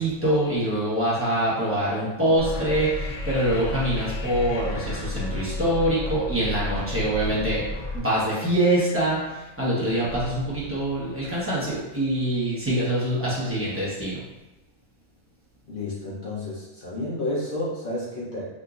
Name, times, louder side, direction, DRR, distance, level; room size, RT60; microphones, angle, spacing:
voice 1, 0.0-7.6 7.9-14.2, right 1 dB, 10° right, -9 dB, 1.0 m, -24 dB
sound 1, 2.4-8.0, left 2 dB, 75° left, 0.9 m, -32 dB
voice 2, 15.7-18.5, left 1 dB, 50° left, -7 dB, 1.0 m, -31 dB
3.7 x 2.7 x 2.4 m, 1.0 s
omnidirectional pair, 1.2 m